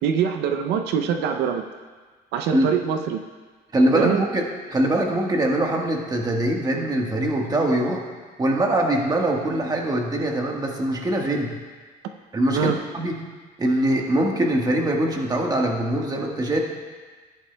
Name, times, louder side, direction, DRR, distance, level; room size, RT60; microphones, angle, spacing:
voice 1, 0.0-1.6 2.3-3.2 3.9-4.3 12.5-12.8, right 7 dB, 90° right, 6 dB, 0.6 m, -23 dB
voice 2, 3.7-8.0 8.4-11.5 12.3-13.2 13.6-16.6, right 1 dB, 25° right, 0 dB, 1.4 m, -23 dB
13.5 x 10.0 x 2.2 m, 1.4 s
cardioid pair, 110°, 17 cm